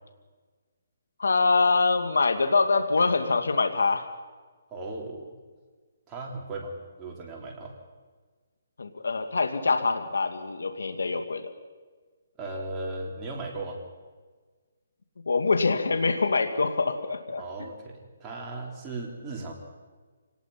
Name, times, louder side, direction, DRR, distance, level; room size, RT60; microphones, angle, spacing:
voice 1, 1.2-4.1 8.8-11.5 15.3-17.4, left 4 dB, 85° left, 8 dB, 2.0 m, -24 dB
voice 2, 4.7-5.4 6.1-7.7 12.4-13.8 17.4-19.5, right 2 dB, 15° right, -1 dB, 3.8 m, -37 dB
26.0 x 19.0 x 5.8 m, 1.4 s
hypercardioid pair, 160°, 0 cm